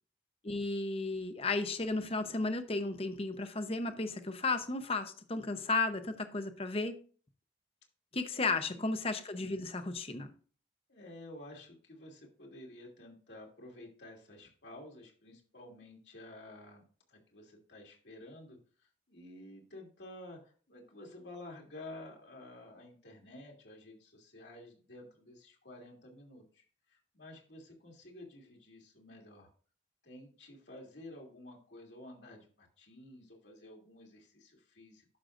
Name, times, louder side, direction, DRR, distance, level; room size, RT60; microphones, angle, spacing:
voice 1, 0.4-7.0 8.1-10.3, left 3 dB, 35° left, 0.8 m, -34 dB
voice 2, 8.4-8.8 10.9-16.8 17.1-18.6 19.1-29.5 30.0-35.1, left 1 dB, 75° left, 2.6 m, -51 dB
11.0 x 6.3 x 2.6 m
head